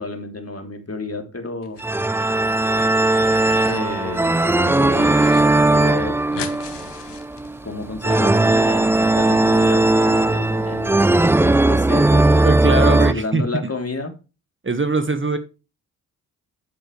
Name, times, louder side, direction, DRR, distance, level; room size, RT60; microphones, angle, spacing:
voice 1, 0.0-1.8 3.7-5.2 5.7-6.2 7.6-12.5 13.1-14.1, left 2 dB, 35° left, 5 dB, 3.4 m, -30 dB
sound 1, 1.6-2.3 2.6-3.8 4.2-5.4 5.7-5.8 6.0-7.9, left 7 dB, 75° left, 1.9 m, -38 dB
sound 2, 1.8-13.1, right 2 dB, 5° right, 0.4 m, -18 dB
voice 2, 12.4-13.4 14.6-15.4, right 3 dB, 30° right, 10 dB, 1.5 m, -21 dB
11.0 x 7.9 x 3.3 m, 0.30 s
supercardioid pair, 40°, 42 cm